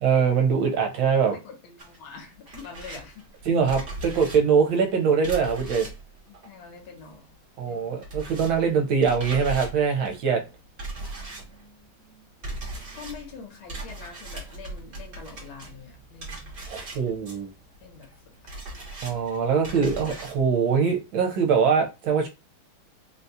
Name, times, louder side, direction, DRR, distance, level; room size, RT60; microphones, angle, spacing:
voice 1, 0.0-1.3 3.5-5.9 7.6-10.4 16.7-17.5 19.0-22.3, right 6 dB, 70° right, 1.4 m, -23 dB
voice 2, 1.4-3.2 6.3-7.3 7.6-8.0 12.9-16.5 17.8-18.1, left 5 dB, 75° left, 1.6 m, -44 dB
sound 1, 1.8-7.3 7.6-20.4, right 2 dB, 40° right, 1.0 m, -39 dB
3.9 x 2.3 x 2.7 m
omnidirectional pair, 2.4 m